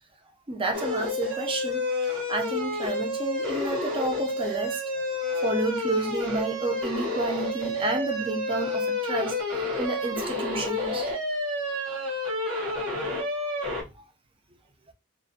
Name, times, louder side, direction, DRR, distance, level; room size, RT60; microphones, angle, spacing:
voice 1, 0.5-4.8 5.4-11.1 13.8-13.9, right 2 dB, 25° right, 0.5 m, -31 dB
sound 1, 0.7-13.8, left 2 dB, 80° right, 1.1 m, -29 dB
2.5 x 2.1 x 2.6 m
head